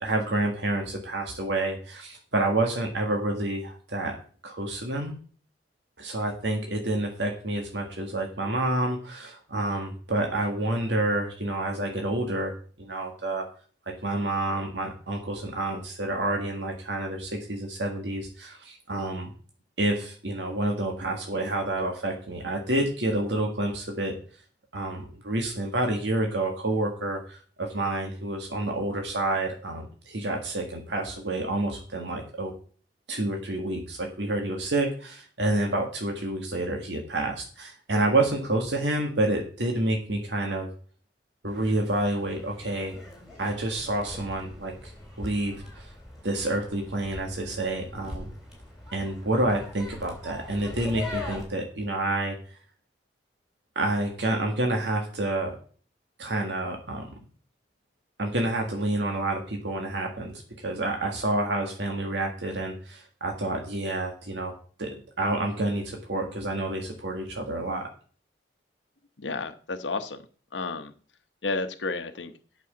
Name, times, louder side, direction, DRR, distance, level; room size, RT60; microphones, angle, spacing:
voice 1, 0.0-4.2 4.4-5.1 6.0-13.5 13.9-19.3 19.8-24.1 24.7-32.5 33.1-40.7 41.4-43.0 43.4-44.9 45.2-45.9 46.2-48.3 48.9-52.4 53.8-55.6 56.2-57.1 58.2-64.5 64.8-64.9 65.2-67.9, right 2 dB, 80° right, 2 dB, 1.7 m, -28 dB
sound 1, 41.5-51.5, left 2 dB, 5° right, 3.7 m, -42 dB
voice 2, 69.2-70.2 70.5-70.9 71.4-72.3, left 3 dB, 85° left, 7 dB, 0.9 m, -31 dB
8.6 x 6.2 x 7.4 m, 0.43 s
head